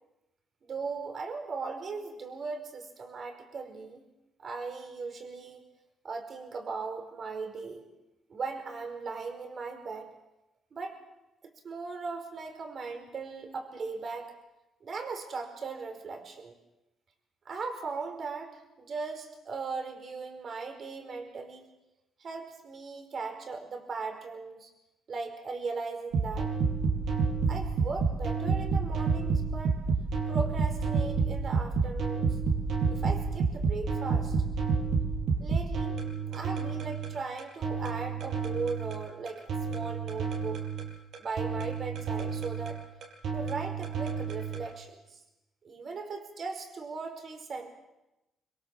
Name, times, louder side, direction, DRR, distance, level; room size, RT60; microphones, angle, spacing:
voice 1, 0.7-4.0 4.4-5.6 6.0-7.9 8.3-10.1 10.7-11.0 11.4-14.3 14.8-16.5 17.4-21.7 22.2-24.7 25.1-26.5 27.5-29.8 30.3-32.4 32.9-34.4 35.4-36.0 36.3-40.7 41.2-42.8 43.3-45.2 45.6-47.7, right 4 dB, 50° right, 5 dB, 4.9 m, -38 dB
sound 1, 26.1-44.7, right 5 dB, 70° right, 5.6 m, -30 dB
26.0 x 23.0 x 7.4 m, 0.97 s
cardioid pair, 90°, 0 cm